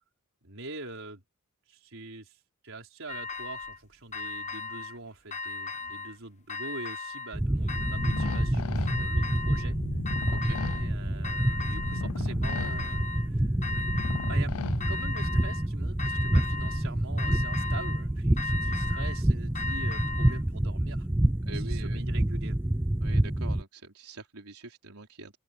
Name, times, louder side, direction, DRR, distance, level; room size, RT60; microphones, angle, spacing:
voice 1, 0.4-1.2 1.7-2.4 2.6-9.8 10.7-13.9 14.3-14.5 14.9-21.1 21.3-22.6, right 2 dB, 65° right, 5.1 m, -44 dB
sound 1, 3.1-3.8 4.1-5.0 5.3-6.2 6.5-7.4 7.7-8.5 8.9-9.7 10.1-10.9 11.2-12.1 12.4-13.3 13.6-14.5 14.8-15.7 16.0-16.9 17.2-18.0 18.4-20.4, left 3 dB, 35° left, 1.0 m, -37 dB
sound 2, 7.3-23.6, right 1 dB, 10° right, 0.5 m, -28 dB
sound 3, 7.7-15.4, left 5 dB, 80° left, 0.6 m, -38 dB
voice 2, 10.3-10.6 21.5-22.0 23.0-25.4, right 3 dB, 85° right, 3.7 m, -44 dB
open air
head